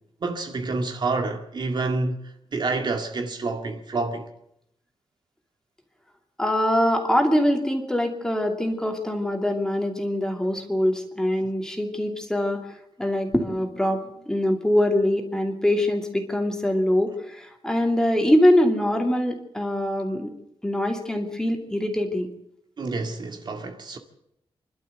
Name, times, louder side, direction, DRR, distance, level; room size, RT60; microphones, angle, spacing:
voice 1, 0.2-4.3 22.8-24.0, right 3 dB, 45° right, 2.2 m, -28 dB
voice 2, 6.4-12.6 13.0-20.3 20.6-22.3, left 1 dB, 5° left, 2.7 m, -23 dB
27.5 x 12.0 x 8.0 m
wide cardioid pair, 155°, 10 cm